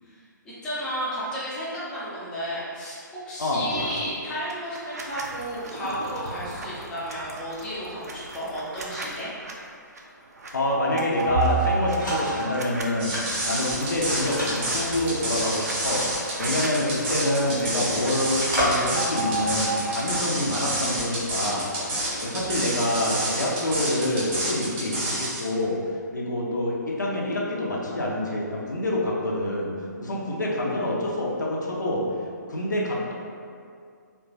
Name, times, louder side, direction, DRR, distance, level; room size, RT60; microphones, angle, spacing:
voice 1, 0.0-3.0 3.3-9.3, equal, 5° left, -10 dB, 0.4 m, -33 dB
sound 1, 3.7-4.1 4.5-9.5 10.0-10.1 10.4-12.8 13.2-18.1 18.4-20.0, right 2 dB, 55° right, 0.4 m, -34 dB
voice 2, 10.5-13.2 13.4-16.0 16.4-21.7 22.2-25.8 26.1-29.7 30.0-32.0 32.5-33.1, left 1 dB, 70° left, -4 dB, 0.5 m, -26 dB
sound 2, 11.3-12.6 13.1-17.6 17.9-23.3, right 1 dB, 85° left, 1.0 m, -32 dB
sound 3, 13.0-25.4, right 1 dB, 30° right, 0.7 m, -29 dB
2.9 x 2.2 x 2.5 m, 2.3 s
figure-of-eight pair, 130°, 10 cm